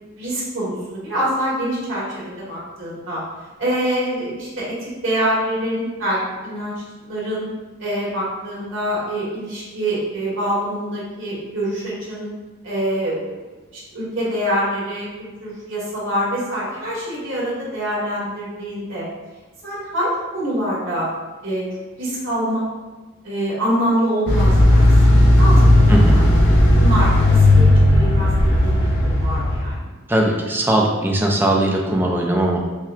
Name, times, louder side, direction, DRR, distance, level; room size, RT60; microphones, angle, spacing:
voice 1, 0.2-3.2 3.6-6.7 7.0-7.5 7.8-12.3 12.6-13.3 13.7-19.1 19.6-21.1 21.4-21.6 22.0-22.7 23.2-26.5 26.8-29.8, equal, 65° right, -6 dB, 1.5 m, -25 dB
sound 1, 24.3-29.8, left 1 dB, 55° left, 0.7 m, -14 dB
voice 2, 25.9-26.2 30.1-32.6, right 1 dB, 10° right, -1 dB, 0.5 m, -19 dB
5.8 x 2.2 x 2.4 m, 1.2 s
head